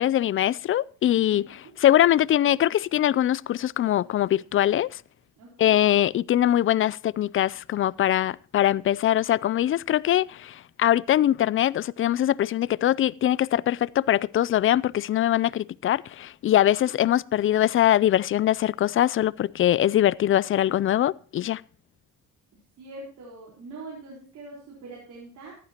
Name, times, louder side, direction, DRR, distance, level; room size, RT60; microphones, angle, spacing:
voice 1, 0.0-5.0 5.6-21.6, left 12 dB, 45° left, 0.4 m, -22 dB
voice 2, 1.3-1.7 5.4-5.8 16.8-16.9 22.8-25.6, right 2 dB, 80° right, 4.3 m, -43 dB
14.5 x 11.5 x 2.9 m
cardioid pair, 90°, 30 cm